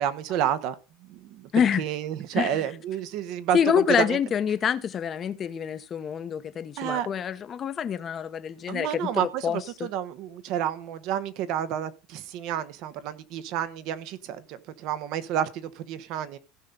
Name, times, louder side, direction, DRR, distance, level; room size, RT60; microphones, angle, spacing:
voice 1, 0.0-4.2 6.8-7.1 8.7-16.4, right 10 dB, 60° right, 1.1 m, -30 dB
voice 2, 3.5-9.9, left 8 dB, 30° left, 0.9 m, -26 dB
16.5 x 5.7 x 3.9 m
supercardioid pair, 120°, 0 cm